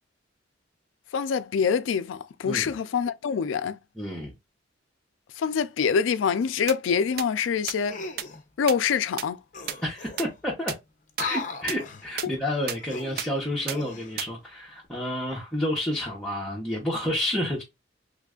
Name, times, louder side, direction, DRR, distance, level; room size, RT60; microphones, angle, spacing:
voice 1, 1.1-3.8 5.4-8.0 8.6-9.4 12.2-12.3, left 6 dB, 85° left, 0.4 m, -25 dB
voice 2, 2.4-2.8 4.0-4.3 9.8-10.7 11.2-17.6, left 1 dB, 5° left, 0.8 m, -30 dB
sound 1, 6.7-6.8 7.2-7.3 7.7-7.8 8.2-8.3 8.7-8.8 9.2-9.3 9.7-9.8 10.2-10.3 10.7-10.8 11.2-11.3 11.7-11.8 12.2-12.3 12.7-12.8 13.2-13.3 13.7-13.8 14.2-14.3, right 10 dB, 50° right, 0.3 m, -30 dB
sound 2, 7.9-8.4 9.2-9.3 9.5-10.4 11.1-12.1 12.7-14.2 14.7-14.9, left 4 dB, 40° left, 0.6 m, -37 dB
3.1 x 2.3 x 3.6 m
head